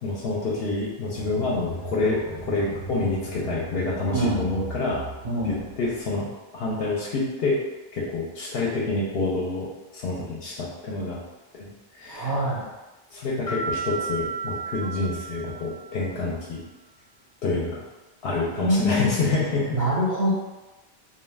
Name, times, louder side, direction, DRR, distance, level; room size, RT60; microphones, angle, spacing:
voice 1, 0.0-5.0 5.4-6.3 6.5-7.6 7.9-9.7 9.9-11.2 11.5-11.7 11.9-12.3 13.1-16.6 17.4-17.8 18.2-19.8, left 3 dB, 70° left, -5 dB, 0.8 m, -27 dB
sound 1, 1.1-6.2, equal, 55° right, 0.6 m, -38 dB
voice 2, 4.1-4.4 5.2-5.6 12.1-12.7 18.6-19.1 19.7-20.3, equal, 75° right, -6 dB, 0.9 m, -24 dB
sound 2, 13.5-16.1, right 5 dB, 50° left, 0.5 m, -33 dB
2.3 x 2.3 x 3.2 m, 1.1 s
omnidirectional pair, 1.1 m